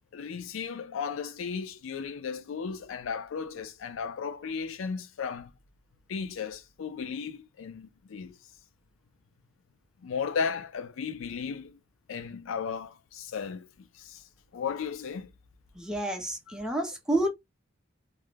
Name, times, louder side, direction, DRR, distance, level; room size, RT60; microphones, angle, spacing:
voice 1, 0.1-5.5 6.1-8.4 10.0-11.8 12.1-14.2 14.5-15.3 16.5-16.6, left 6 dB, 90° left, 0.4 m, -35 dB
voice 2, 15.8-17.3, right 1 dB, 5° right, 0.5 m, -29 dB
2.4 x 2.1 x 3.1 m
head